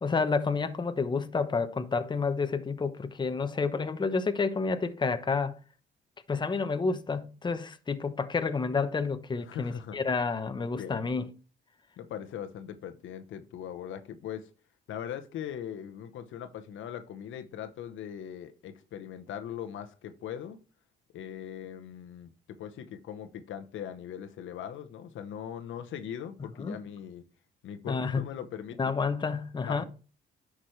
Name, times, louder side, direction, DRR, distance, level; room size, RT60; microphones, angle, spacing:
voice 1, 0.0-5.6 6.3-11.3 26.6-26.8 27.9-28.2 28.8-29.8, left 4 dB, 25° left, 0.8 m, -29 dB
voice 2, 9.4-10.0 10.6-11.1 12.0-14.5 14.9-20.6 21.1-27.2 27.6-28.9 29.6-29.8, left 9 dB, 75° left, 0.9 m, -40 dB
10.0 x 6.2 x 3.2 m
cardioid pair, 90°, 20 cm